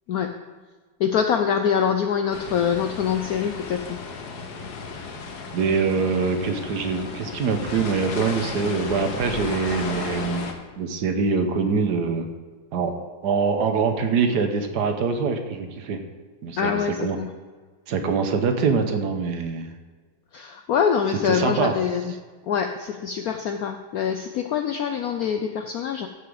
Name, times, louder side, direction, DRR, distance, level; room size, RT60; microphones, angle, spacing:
voice 1, 1.0-4.0 16.6-17.3 20.3-22.1 22.5-26.1, left 7 dB, 90° left, 6 dB, 0.8 m, -24 dB
sound 1, 2.3-10.5, left 4 dB, 55° left, 1.5 m, -34 dB
voice 2, 5.5-10.4 10.8-12.3 12.7-12.9 13.2-16.0 16.4-17.2 17.9-19.7 21.3-21.8, right 5 dB, 60° right, 6 dB, 1.3 m, -24 dB
15.0 x 5.7 x 5.0 m, 1.4 s
omnidirectional pair, 2.2 m